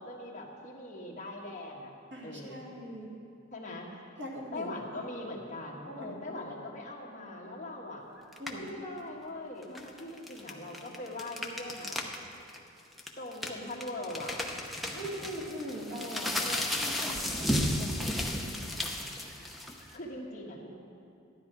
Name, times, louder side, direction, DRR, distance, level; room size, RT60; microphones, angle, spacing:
voice 1, 0.0-1.9 2.2-2.7 3.5-3.9 4.5-8.1 8.5-12.0 13.2-14.4 16.4-16.6 19.9-20.7, left 1 dB, 40° left, -2 dB, 1.5 m, -41 dB
voice 2, 2.1-3.1 4.2-5.0 5.9-6.7 8.4-8.7 14.9-18.3, equal, 60° right, -3 dB, 2.3 m, -41 dB
sound 1, 8.3-8.7 9.6-12.2 12.5-12.6 13.0-19.9, left 1 dB, ahead, 0.8 m, -34 dB
12.5 x 11.0 x 4.7 m, 2.6 s
head